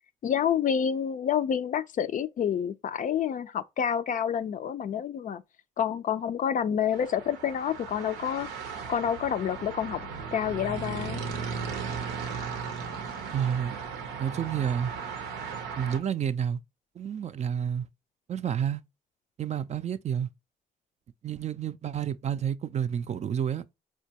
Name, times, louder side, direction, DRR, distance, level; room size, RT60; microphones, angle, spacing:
voice 1, 0.2-5.4 5.8-8.5 8.9-10.0 10.3-11.2, left 8 dB, 50° left, 0.4 m, -28 dB
sound 1, 6.9-16.0, right 5 dB, 85° right, 0.6 m, -36 dB
voice 2, 13.3-13.8 14.2-14.9 15.8-16.6 17.0-17.9 18.3-18.8 19.4-20.3 21.2-23.6, right 8 dB, 40° right, 0.4 m, -30 dB
4.3 x 2.2 x 2.8 m
supercardioid pair, 50°, 17 cm